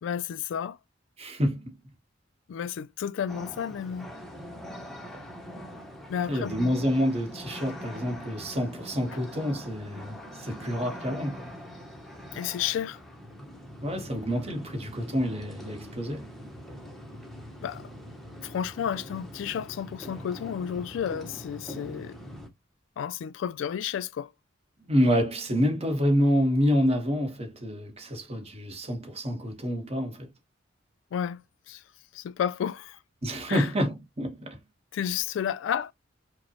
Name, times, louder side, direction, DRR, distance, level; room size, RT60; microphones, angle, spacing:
voice 1, 0.0-0.8 2.5-4.1 6.1-6.7 12.3-13.0 17.6-17.9 18.4-22.2 23.0-24.3 31.1-31.8 32.1-33.0 33.5-33.7 34.9-35.9, left 8 dB, 80° left, 0.3 m, -32 dB
voice 2, 1.2-1.7 6.3-11.5 13.8-16.3 24.9-30.3 33.2-34.6, equal, 35° right, 1.1 m, -27 dB
sound 1, 3.3-22.5, equal, ahead, 0.7 m, -43 dB
4.9 x 2.1 x 2.8 m
head